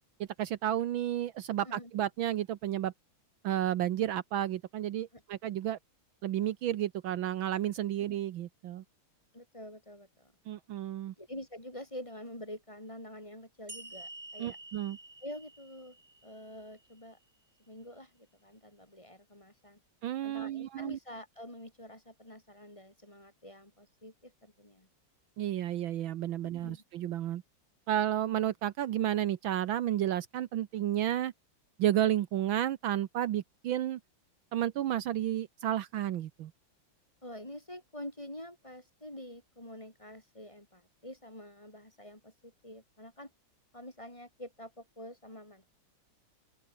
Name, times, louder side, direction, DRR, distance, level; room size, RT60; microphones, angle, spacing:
voice 1, 0.4-2.9 3.4-5.8 6.2-8.8 10.5-11.1 14.4-15.0 20.0-21.0 25.4-27.4 27.9-31.3 31.8-34.0 34.5-36.5, right 12 dB, 70° right, 1.6 m, -32 dB
voice 2, 9.3-10.3 11.2-14.6 15.2-17.2 17.6-19.8 20.2-24.9 26.4-26.8 37.2-43.3 43.7-45.7, left 1 dB, 15° left, 3.3 m, -47 dB
sound 1, 13.7-17.1, right 2 dB, 30° right, 5.8 m, -49 dB
open air
omnidirectional pair, 2.3 m